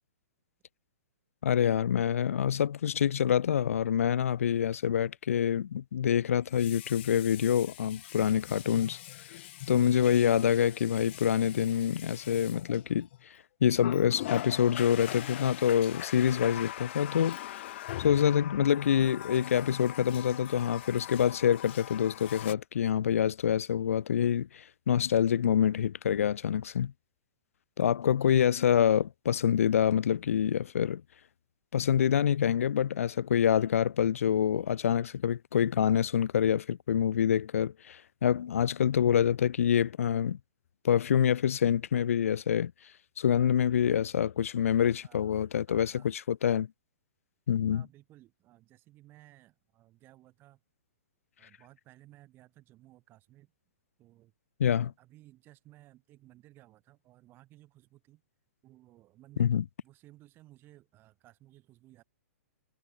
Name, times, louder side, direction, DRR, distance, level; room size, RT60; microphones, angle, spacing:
voice 1, 1.4-9.0 9.7-13.1 13.6-26.9 27.8-31.0 31.7-40.4 40.8-42.7 43.2-46.7 47.5-47.9 54.6-54.9 59.4-59.6, left 9 dB, 80° left, 0.5 m, -26 dB
Water tap faucet, 2.8-3.0 6.4-13.2 13.8-22.5, left 15 dB, 55° left, 0.8 m, -42 dB
voice 2, 45.0-45.4 45.7-46.1 47.7-50.6 51.4-53.5 54.0-54.3 54.8-58.2 58.6-62.0, right 16 dB, 30° right, 4.0 m, -58 dB
hypercardioid pair, 135°, 7 cm